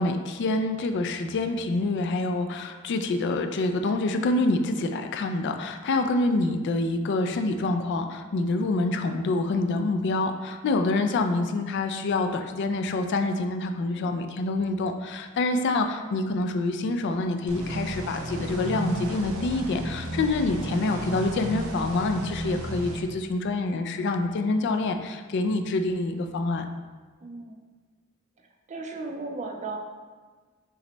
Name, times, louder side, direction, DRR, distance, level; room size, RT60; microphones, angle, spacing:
voice 1, 0.0-26.7, left 2 dB, 55° left, 6 dB, 0.3 m, -26 dB
sound 1, 17.5-23.0, right 1 dB, 85° right, 0.7 m, -33 dB
voice 2, 27.2-27.6 28.4-29.8, right 3 dB, 35° right, 3 dB, 0.4 m, -37 dB
5.8 x 2.1 x 3.9 m, 1.5 s
head